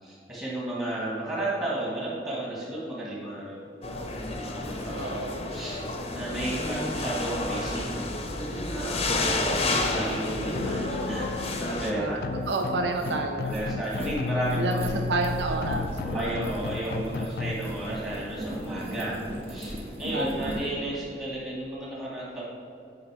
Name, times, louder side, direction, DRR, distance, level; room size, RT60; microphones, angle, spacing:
voice 1, 0.0-3.6 4.6-5.2 5.5-5.8 6.1-8.1 8.7-12.3 13.4-14.9 16.1-19.2 19.5-22.4, right 1 dB, 15° right, -7 dB, 1.5 m, -33 dB
sound 1, 3.8-11.9, left 2 dB, 35° left, 0.7 m, -30 dB
voice 2, 5.0-5.4 11.9-12.2 12.5-13.5 14.6-16.4 20.1-20.6, right 3 dB, 75° right, 4 dB, 0.6 m, -30 dB
sound 2, 10.5-17.5, left 4 dB, 55° left, 0.3 m, -33 dB
sound 3, 12.2-20.7, equal, 35° right, 1.2 m, -37 dB
8.7 x 5.1 x 4.7 m, 2.6 s
head